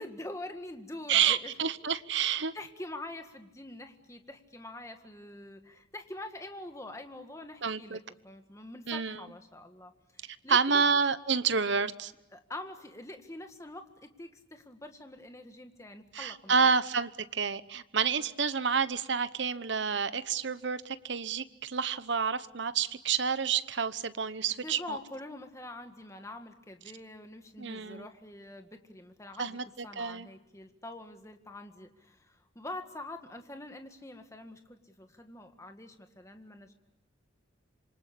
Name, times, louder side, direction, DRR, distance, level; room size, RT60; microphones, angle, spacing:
voice 1, 0.0-1.5 2.2-10.8 12.3-16.7 24.6-29.6 29.8-36.7, left 1 dB, 15° left, 6 dB, 1.8 m, -45 dB
voice 2, 1.1-2.5 7.6-8.0 8.9-9.2 10.5-12.1 16.1-25.0 27.6-28.1 29.4-29.6 30.0-30.3, right 6 dB, 65° right, 14 dB, 1.0 m, -29 dB
27.0 x 24.5 x 8.4 m, 0.87 s
head